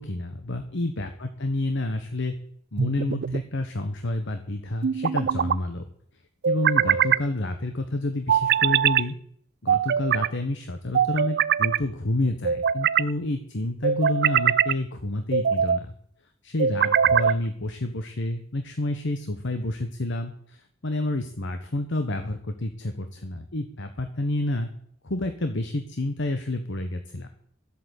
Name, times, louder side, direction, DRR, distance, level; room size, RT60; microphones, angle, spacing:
voice 1, 0.0-2.4 2.7-5.8 6.4-9.2 9.6-15.9 16.4-20.6 20.8-24.7 25.0-27.3, left 2 dB, 65° left, 7 dB, 1.2 m, -29 dB
sound 1, 2.8-3.4 4.8-5.6 6.4-7.2 8.3-9.1 9.7-10.3 10.9-11.8 12.4-13.1 13.8-14.8 15.3-15.8 16.6-17.4, right 8 dB, 55° right, 0.4 m, -22 dB
13.0 x 8.5 x 8.4 m, 0.65 s
head